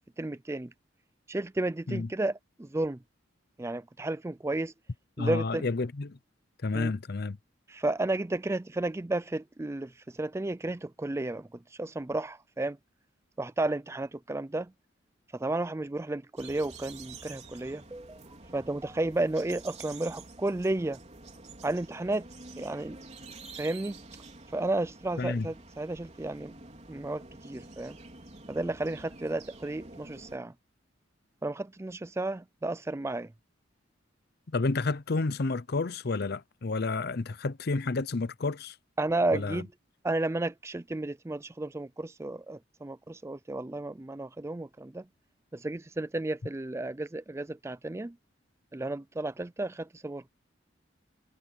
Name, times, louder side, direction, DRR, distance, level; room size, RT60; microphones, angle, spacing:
voice 1, 0.2-0.7 1.3-3.0 3.6-4.7 5.2-5.7 6.7-6.9 7.7-9.9 10.2-12.8 13.4-14.7 15.3-18.2 18.5-21.0 21.6-22.3 22.6-23.0 23.6-24.0 24.5-26.5 26.9-28.0 28.5-30.5 31.4-33.3 39.0-39.7 40.0-45.0 45.5-48.1 48.7-50.3, right 2 dB, 15° right, 0.4 m, -32 dB
voice 2, 5.2-6.2 6.6-7.4 25.2-25.5 34.5-38.7 39.3-39.6, left 3 dB, 55° left, 0.7 m, -30 dB
sound 1, 16.4-30.4, right 3 dB, 35° right, 4.0 m, -48 dB
head